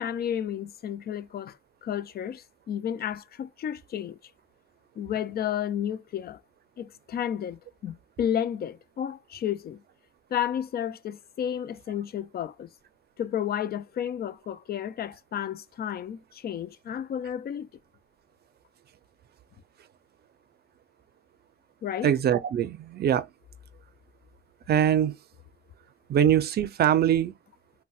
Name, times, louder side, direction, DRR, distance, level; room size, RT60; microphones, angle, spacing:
voice 1, 0.0-4.2 5.0-6.4 6.8-9.8 10.3-12.7 13.2-17.7 21.8-22.1, left 9 dB, 50° left, 0.4 m, -32 dB
voice 2, 22.0-23.3 24.7-25.2 26.1-27.3, right 10 dB, 55° right, 0.5 m, -23 dB
3.9 x 2.1 x 2.3 m
cardioid pair, 90°, 20 cm